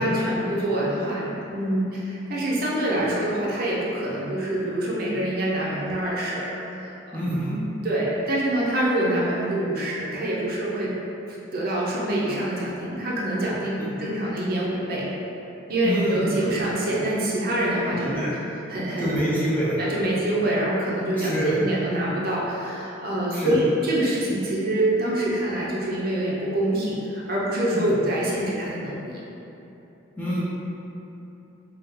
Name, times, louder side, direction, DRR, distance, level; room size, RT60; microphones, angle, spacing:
voice 1, 0.0-6.5 6.8-7.2 7.8-10.9 11.5-15.1 15.7-18.4 18.7-19.2 19.8-29.2, right 1 dB, 50° right, -6 dB, 0.5 m, -25 dB
voice 2, 7.1-7.6 13.8-13.9 15.8-16.2 17.9-18.3 19.0-19.8 21.2-21.6 23.3-23.5 27.7-27.9 30.2-30.4, right 1 dB, 10° left, -9 dB, 0.5 m, -26 dB
2.7 x 2.3 x 3.6 m, 3.0 s
head